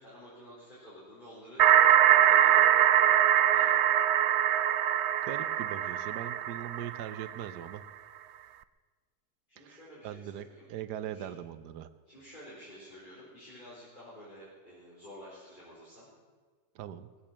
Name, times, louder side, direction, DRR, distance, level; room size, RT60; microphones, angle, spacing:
voice 1, 0.0-1.6 2.1-2.6 3.4-3.7 9.5-10.7 11.0-11.3 12.1-16.1, equal, 30° left, -8 dB, 4.7 m, -51 dB
sound 1, 1.6-7.3, right 10 dB, 70° right, 0.6 m, -23 dB
voice 2, 5.2-7.8 9.6-9.8 10.0-11.9 16.7-17.1, right 10 dB, 90° right, 12 dB, 1.4 m, -40 dB
21.5 x 8.6 x 7.4 m, 1.5 s
omnidirectional pair, 1.7 m